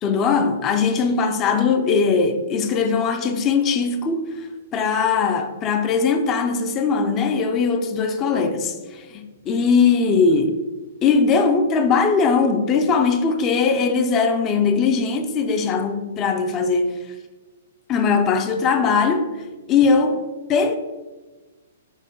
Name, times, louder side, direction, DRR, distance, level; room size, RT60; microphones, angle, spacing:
voice 1, 0.0-10.6 11.0-17.0 17.9-19.4 19.7-20.2 20.5-20.7, left 5 dB, 20° left, 0.3 m, -20 dB
5.0 x 2.2 x 3.6 m
hypercardioid pair, 160°, 0 cm